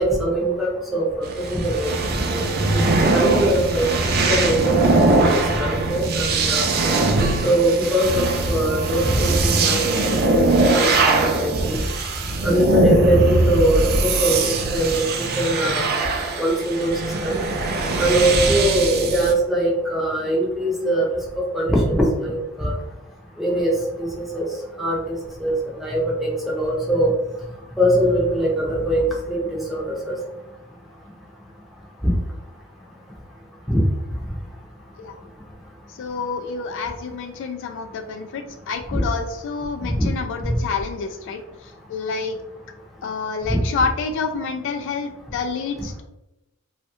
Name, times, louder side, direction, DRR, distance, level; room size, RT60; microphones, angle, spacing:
voice 1, 0.0-1.9 2.3-2.4 3.1-3.8 4.3-4.7 5.0-5.1 5.5-6.6 7.4-10.0 10.3-10.5 10.7-11.8 12.4-15.9 16.4-16.9 17.2-17.4 18.0-21.1 21.5-22.7 23.4-23.7 24.0-24.5 24.8-25.0 25.4-25.5 25.8-27.1 27.8-29.4 29.7-30.1 33.7-33.8 38.9-39.0 39.9-40.1 40.4-40.6 43.5-43.6, right 1 dB, ahead, -3 dB, 0.7 m, -21 dB
sound 1, 1.2-19.3, right 3 dB, 45° right, 0.4 m, -21 dB
voice 2, 35.9-42.4 43.0-46.0, left 5 dB, 60° left, 5 dB, 0.3 m, -28 dB
3.1 x 2.3 x 2.9 m, 0.94 s
head